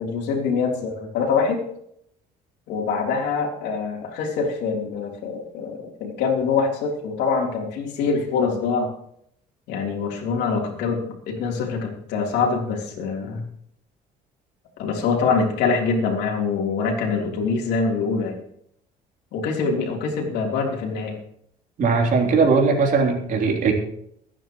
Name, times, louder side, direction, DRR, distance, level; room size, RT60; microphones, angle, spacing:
voice 1, 0.0-1.6 2.7-8.9 9.7-13.4 14.8-18.3 19.3-21.2, left 5 dB, 85° left, 0 dB, 3.5 m, -24 dB
voice 2, 21.8-23.7, right 4 dB, 50° right, 0 dB, 3.3 m, -19 dB
24.0 x 9.8 x 3.1 m, 0.68 s
cardioid pair, 110°, 17 cm